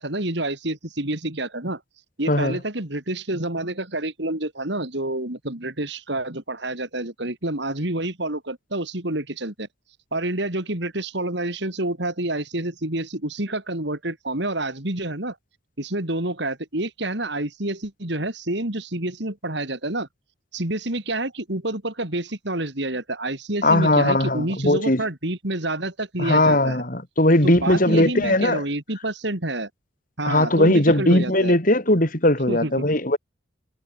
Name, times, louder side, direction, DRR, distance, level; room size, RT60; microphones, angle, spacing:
voice 1, 0.0-1.8 2.2-9.7 10.1-15.4 15.8-20.1 20.5-26.8 27.4-29.7 30.2-31.5 32.5-32.7, right 1 dB, 60° right, 3.3 m, -28 dB
voice 2, 2.3-2.6 23.6-25.0 26.2-28.6 30.2-33.2, left 1 dB, 45° left, 3.9 m, -19 dB
head